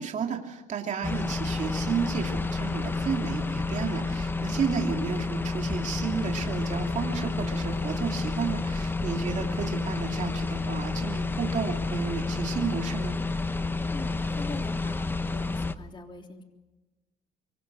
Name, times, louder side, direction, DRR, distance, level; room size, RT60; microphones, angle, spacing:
voice 1, 0.0-13.1, right 7 dB, 45° right, 2 dB, 2.9 m, -32 dB
sound 1, 1.0-15.7, left 3 dB, 10° left, 0.9 m, -30 dB
voice 2, 13.9-16.4, left 3 dB, 30° left, 3 dB, 3.4 m, -42 dB
25.5 x 24.0 x 6.4 m, 1.1 s
cardioid pair, 110°, 17 cm